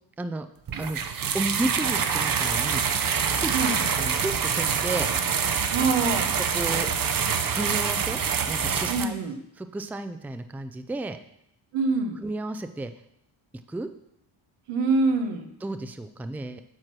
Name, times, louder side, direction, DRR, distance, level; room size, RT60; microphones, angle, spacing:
sound 1, 0.7-9.0, right 6 dB, 45° right, 0.8 m, -26 dB
voice 1, 1.3-2.8 3.4-3.6 4.0-5.1 6.4-6.9 7.5-8.2 8.5-9.2 9.6-11.2 12.2-12.9 13.7-13.9 15.6-16.6, right 2 dB, 5° right, 9 dB, 0.4 m, -32 dB
voice 2, 5.7-6.4 8.9-9.4 11.7-12.2 14.7-15.5, right 3 dB, 90° right, 5 dB, 1.2 m, -25 dB
7.8 x 4.5 x 6.0 m, 0.77 s
cardioid pair, 75°, 50 cm